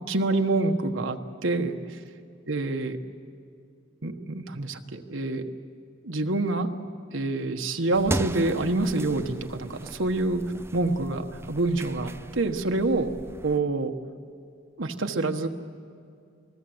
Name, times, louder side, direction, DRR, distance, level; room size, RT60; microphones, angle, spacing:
voice 1, 0.1-1.7 2.5-3.0 4.0-5.5 6.0-6.7 7.1-10.4 10.7-13.1 13.4-13.9 14.8-15.5, right 2 dB, 75° right, 5 dB, 1.3 m, -26 dB
sound 1, 7.9-13.6, right 1 dB, 15° right, 0.5 m, -37 dB
28.5 x 19.5 x 7.9 m, 2.3 s
head